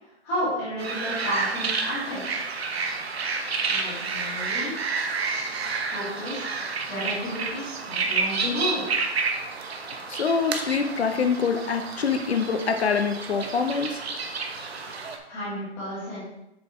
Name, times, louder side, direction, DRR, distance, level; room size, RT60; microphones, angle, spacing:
voice 1, 0.2-2.4 3.7-4.7 5.9-6.5 6.9-8.8 15.3-16.2, equal, 5° left, -9 dB, 1.1 m, -32 dB
sound 1, 0.8-15.2, right 4 dB, 65° right, 1.1 m, -30 dB
voice 2, 10.1-14.0, left 5 dB, 70° left, 6 dB, 0.8 m, -25 dB
7.6 x 3.9 x 4.7 m, 0.85 s
hypercardioid pair, 180°, 34 cm